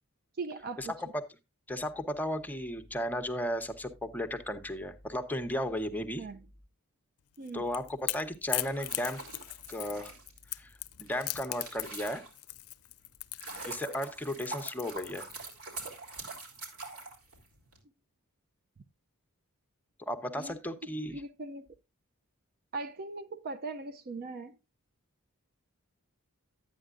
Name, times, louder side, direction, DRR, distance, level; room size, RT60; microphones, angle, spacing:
voice 1, 0.4-0.9 6.2-6.4 7.4-7.7 20.2-20.6 20.8-21.8 22.7-24.6, right 3 dB, 45° right, 0.5 m, -40 dB
voice 2, 1.7-6.2 7.5-9.2 9.7-10.1 10.6-10.7 11.0-12.2 13.4-15.3 20.0-21.2, left 1 dB, 10° left, 0.8 m, -35 dB
Crackle / Crack, 7.4-15.5, left 19 dB, 75° left, 0.5 m, -38 dB
sound 1, 8.6-12.6 13.1-17.8, right 3 dB, 80° right, 3.5 m, -44 dB
11.5 x 9.0 x 2.5 m
head